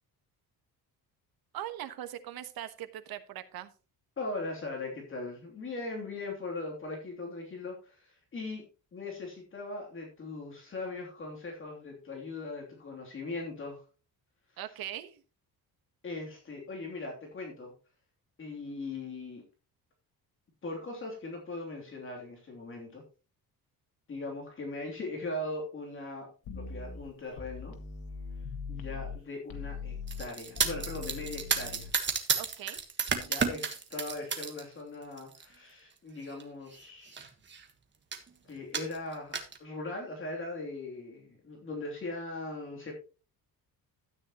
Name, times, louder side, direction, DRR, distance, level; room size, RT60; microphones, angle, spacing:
voice 1, 1.5-3.7 14.6-15.2 32.4-32.8, right 12 dB, 75° right, 10 dB, 1.3 m, -40 dB
voice 2, 4.2-8.6 8.9-13.8 16.0-17.7 18.4-19.4 20.6-23.0 24.1-26.3 26.5-27.7 28.7-31.9 33.2-37.2 38.5-42.9, left 2 dB, 35° left, 0 dB, 3.0 m, -39 dB
sound 1, 26.5-29.2 29.5-31.9, left 5 dB, 85° left, 1.8 m, -41 dB
sound 2, 30.1-34.6 35.0-35.5 36.3-36.4 36.7-36.8 37.1-37.6 38.1-38.3 38.7-39.6, right 6 dB, 30° right, 1.5 m, -32 dB
13.0 x 9.2 x 3.0 m, 0.34 s
cardioid pair, 155°, 36 cm